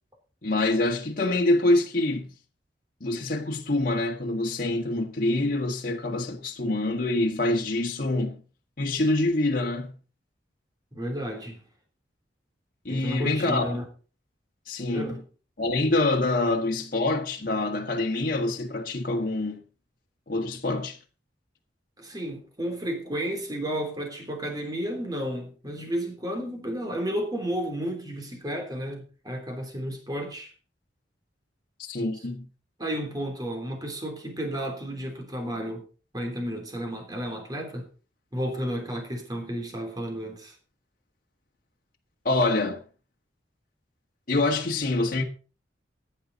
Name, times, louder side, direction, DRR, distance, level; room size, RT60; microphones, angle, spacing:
voice 1, 0.4-2.3 3.0-8.3 8.8-9.9 12.8-13.8 14.7-15.2 15.6-19.6 20.3-21.0 31.8-32.4 42.2-42.8 44.3-45.2, left 2 dB, 50° left, 1.6 m, -25 dB
voice 2, 10.9-11.6 12.9-13.8 14.9-15.2 22.0-30.5 32.8-35.9 36.1-37.9 38.3-40.5, equal, 20° right, 3.4 m, -32 dB
14.5 x 9.7 x 4.1 m
head